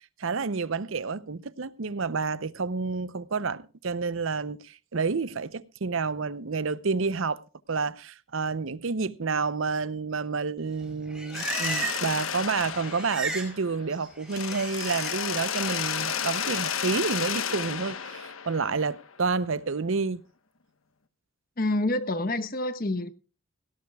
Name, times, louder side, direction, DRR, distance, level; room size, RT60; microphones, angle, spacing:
voice 1, 0.2-7.4 7.7-20.2, right 4 dB, 70° right, 0.7 m, -29 dB
Livestock farm animals working animals, 10.8-12.2 12.5-13.5 13.8-15.1 15.6-16.0, right 3 dB, ahead, 5.2 m, -35 dB
Mechanisms, 11.3-13.9 14.3-19.1, left 8 dB, 80° left, 1.2 m, -32 dB
voice 2, 21.6-23.1, left 2 dB, 45° left, 1.0 m, -27 dB
17.5 x 17.0 x 2.3 m
head